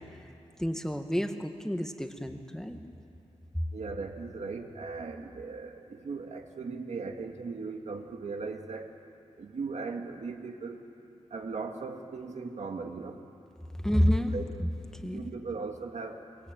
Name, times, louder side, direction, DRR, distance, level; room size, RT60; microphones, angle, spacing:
voice 1, 0.6-2.8 13.8-14.3 14.6-15.3, equal, 5° left, 5 dB, 1.8 m, -29 dB
voice 2, 3.7-8.9 9.4-10.8 11.3-13.2 14.3-14.5 15.0-16.2, right 4 dB, 80° right, 4 dB, 2.0 m, -38 dB
22.5 x 22.0 x 9.2 m, 2.6 s
wide cardioid pair, 75°, 12 cm